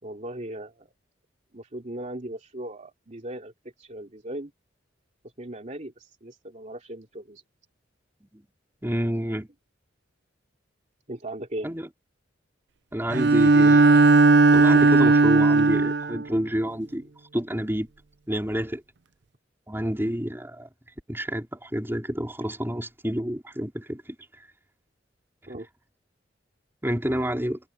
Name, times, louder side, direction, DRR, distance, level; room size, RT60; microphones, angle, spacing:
voice 1, 0.0-0.9 1.5-3.5 3.8-4.5 5.4-7.4 11.1-11.7 25.5-25.7, right 1 dB, 40° right, 2.9 m, -37 dB
voice 2, 8.8-9.5 11.6-11.9 12.9-14.0 14.5-17.9 18.3-18.8 19.7-20.7 21.1-24.2 26.8-27.6, equal, 10° right, 4.4 m, -29 dB
Bowed string instrument, 13.1-16.2, right 3 dB, 65° right, 0.6 m, -17 dB
head